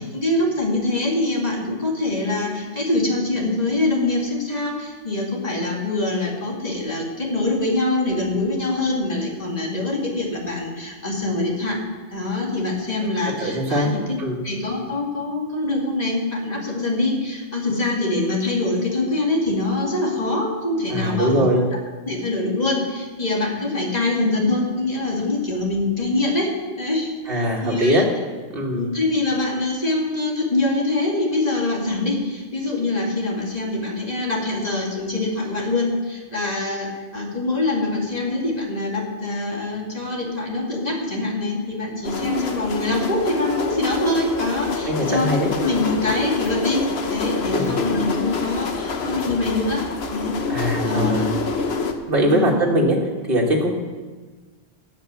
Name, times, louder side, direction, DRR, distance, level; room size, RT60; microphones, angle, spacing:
voice 1, 0.0-11.8 12.1-14.0 14.4-21.4 22.1-28.0 28.7-45.3 45.6-46.8 47.1-49.8 50.1-51.3 52.3-52.6, left 2 dB, 40° left, -2 dB, 2.6 m, -24 dB
voice 2, 13.4-13.9 14.2-14.4 20.9-21.6 27.3-28.1 28.5-28.9 44.9-45.5 47.5-47.8 50.5-51.3 52.0-53.0 53.3-53.7, equal, 55° right, -3 dB, 1.7 m, -21 dB
sound 1, 42.0-51.9, left 4 dB, 70° left, 1.2 m, -27 dB
17.5 x 5.9 x 7.0 m, 1.3 s
omnidirectional pair, 1.1 m